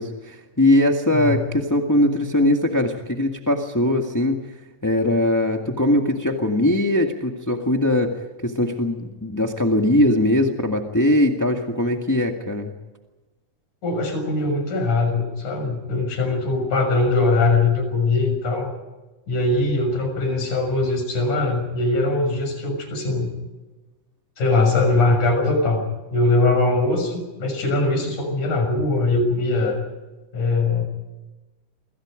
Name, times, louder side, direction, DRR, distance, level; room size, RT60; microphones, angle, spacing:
voice 1, 0.0-4.5 4.8-12.7, left 1 dB, 10° left, 3 dB, 0.9 m, -21 dB
voice 2, 1.1-1.4 13.8-18.7 19.3-23.3 24.4-25.9 26.1-29.8 30.3-30.8, left 2 dB, 65° left, 5 dB, 7.9 m, -21 dB
28.5 x 26.5 x 5.2 m, 1.1 s
omnidirectional pair, 3.8 m